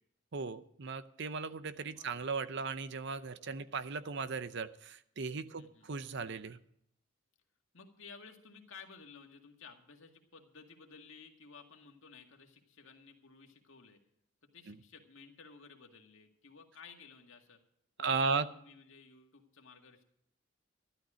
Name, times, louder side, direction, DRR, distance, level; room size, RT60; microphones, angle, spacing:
voice 1, 0.3-6.6 18.0-18.5, right 4 dB, 55° right, 13 dB, 0.7 m, -36 dB
voice 2, 1.9-2.4 5.6-5.9 7.7-14.0 14.5-17.6 18.0-20.0, left 5 dB, 65° left, 3 dB, 2.0 m, -55 dB
13.0 x 12.5 x 5.0 m, 0.71 s
head